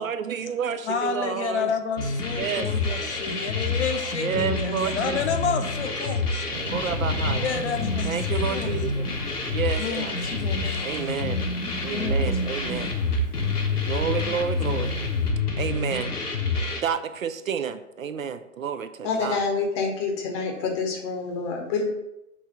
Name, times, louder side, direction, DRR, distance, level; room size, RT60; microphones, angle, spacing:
voice 1, 0.0-1.7 2.4-2.7 3.0-3.1 4.2-5.2 6.1-6.2 6.7-7.4 8.0-9.1 9.5-10.1 10.8-11.4 11.8-12.9 13.9-14.9 15.6-16.5 16.7-19.4, right 7 dB, 65° right, 11 dB, 0.5 m, -30 dB
voice 2, 0.8-6.5 7.3-8.9 9.8-11.2 11.9-13.5 14.2-14.4 14.8-15.1, left 6 dB, 50° left, 6 dB, 0.7 m, -31 dB
sound 1, 2.0-16.8, left 3 dB, 85° left, 1.1 m, -27 dB
Thunder, 6.5-15.3, right 1 dB, 25° right, 0.8 m, -39 dB
voice 3, 19.0-21.9, left 4 dB, 20° left, 2 dB, 0.8 m, -27 dB
5.4 x 3.1 x 5.5 m, 0.87 s
figure-of-eight pair, 125°, 45 cm